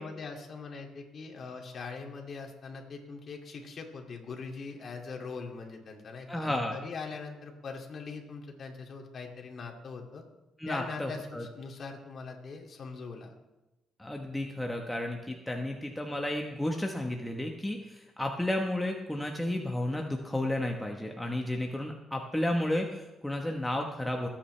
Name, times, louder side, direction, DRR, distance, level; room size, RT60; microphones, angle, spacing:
voice 1, 0.0-10.2 10.7-13.3, left 4 dB, 50° left, 1 dB, 2.5 m, -42 dB
voice 2, 6.3-6.8 10.6-11.4 14.0-24.3, left 1 dB, 5° left, 1 dB, 1.2 m, -32 dB
24.0 x 8.7 x 3.4 m, 1.0 s
cardioid pair, 90°, 0 cm